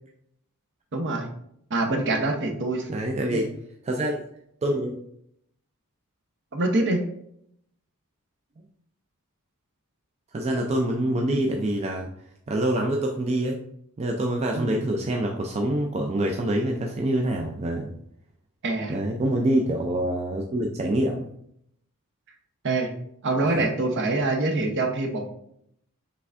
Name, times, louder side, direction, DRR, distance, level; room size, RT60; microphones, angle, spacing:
voice 1, 0.9-1.3 1.7-2.9 3.3-3.4 6.5-7.0 14.5-14.8 18.6-19.0 22.6-22.9 23.2-25.3, right 2 dB, 55° right, 4 dB, 0.7 m, -25 dB
voice 2, 2.9-3.5 3.9-4.2 4.6-5.0 10.3-12.1 12.5-13.6 14.0-17.9 18.9-21.2 23.4-23.7, right 1 dB, 30° right, 1 dB, 0.4 m, -26 dB
5.6 x 3.4 x 2.4 m, 0.72 s
head